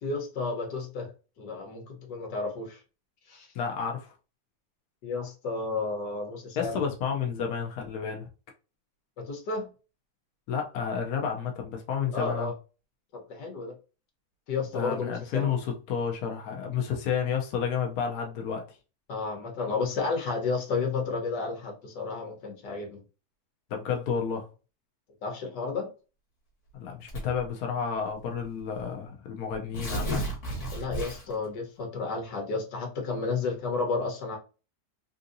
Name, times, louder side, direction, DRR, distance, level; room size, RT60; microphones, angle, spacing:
voice 1, 0.0-1.1 1.4-2.8 3.3-3.5 5.0-6.8 9.2-9.7 12.1-12.5 13.3-13.7 14.5-15.6 19.1-23.0 25.2-25.9 30.7-34.4, left 4 dB, 90° left, 1.7 m, -32 dB
voice 2, 3.5-4.1 6.6-8.3 10.5-12.5 14.7-18.8 23.7-24.5 26.7-30.3, left 7 dB, 70° left, 1.2 m, -31 dB
Tearing, 27.1-27.5 28.4-28.5 28.7-28.8 29.5-31.5, right 1 dB, 45° left, 1.6 m, -33 dB
3.6 x 2.7 x 2.5 m
omnidirectional pair, 1.8 m